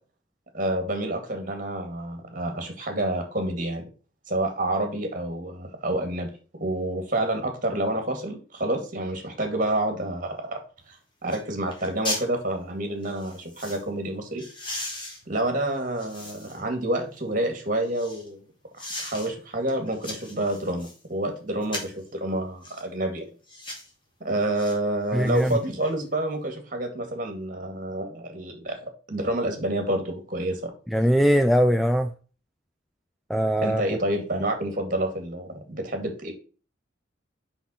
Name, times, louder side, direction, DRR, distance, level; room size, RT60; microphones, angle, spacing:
voice 1, 0.5-3.9 4.3-11.0 11.2-14.4 15.3-18.4 18.8-23.3 24.2-30.7 33.6-36.4, right 1 dB, 40° right, 2.1 m, -28 dB
sound 1, 10.8-10.9 11.3-11.4 11.7-12.3 13.0-13.8 14.4-16.7 17.1-18.3 18.8-19.3 19.7-21.0 21.6-22.0 22.6-22.8 23.5-23.9 24.5-24.8 25.1-25.9 26.3-26.4, left 1 dB, 25° left, 2.3 m, -37 dB
voice 2, 25.1-25.6 30.9-32.1 33.3-33.8, equal, ahead, 0.3 m, -21 dB
5.9 x 5.8 x 4.2 m
head